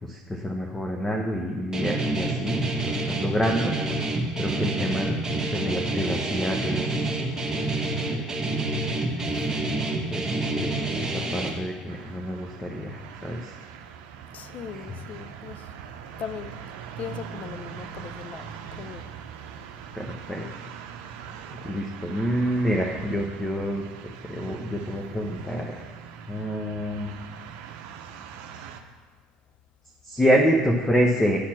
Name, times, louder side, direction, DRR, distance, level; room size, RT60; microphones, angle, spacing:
voice 1, 0.0-3.7 4.4-7.0 7.5-8.3 9.1-9.5 10.1-13.6 14.7-15.0 19.9-20.5 21.6-23.8 24.2-25.8 26.3-27.1 30.0-31.5, equal, 15° left, 1 dB, 1.0 m, -27 dB
Guitar, 1.7-11.5, right 2 dB, 15° right, 1.6 m, -28 dB
sound 1, 11.9-28.8, right 8 dB, 65° right, 0.7 m, -42 dB
voice 2, 14.3-15.7 16.2-16.5 17.0-19.0 20.4-20.5, left 8 dB, 45° left, 13 dB, 0.5 m, -39 dB
9.9 x 4.3 x 6.0 m, 1.5 s
hypercardioid pair, 70°, 4 cm